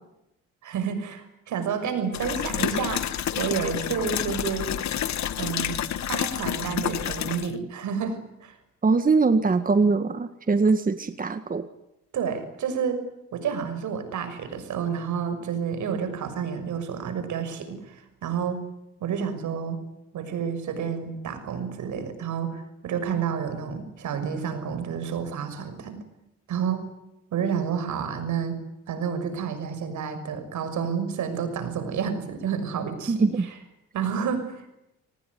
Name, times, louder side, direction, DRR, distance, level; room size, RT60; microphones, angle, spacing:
voice 1, 0.6-3.1 3.4-4.7 5.4-5.8 6.1-8.6 12.1-13.0 13.3-18.6 19.0-19.8 20.1-26.0 26.5-26.8 27.3-28.6 28.9-33.5 33.9-34.7, right 7 dB, 75° right, 9 dB, 6.3 m, -30 dB
sound 1, 2.1-7.5, left 10 dB, 65° left, 1.5 m, -29 dB
voice 2, 8.8-11.7 33.1-33.4, right 4 dB, 30° right, 10 dB, 1.8 m, -22 dB
25.5 x 19.0 x 9.6 m, 0.88 s
cardioid pair, 90°, 30 cm